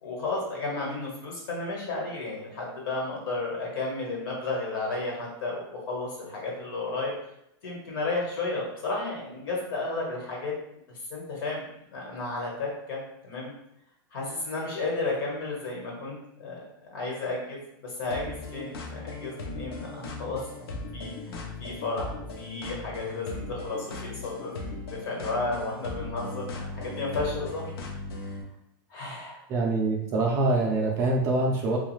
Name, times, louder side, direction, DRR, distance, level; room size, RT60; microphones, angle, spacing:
voice 1, 0.0-7.3 7.6-10.5 11.1-11.6 11.9-13.5 14.1-16.6 16.9-20.7 20.9-27.7 28.2-28.4 28.9-29.4, left 3 dB, 60° left, -3 dB, 1.2 m, -33 dB
sound 1, 18.1-28.4, left 3 dB, 75° left, 0.6 m, -38 dB
voice 2, 29.5-31.8, right 2 dB, 20° right, -1 dB, 0.3 m, -25 dB
2.5 x 2.3 x 3.1 m, 0.78 s
supercardioid pair, 170°, 13 cm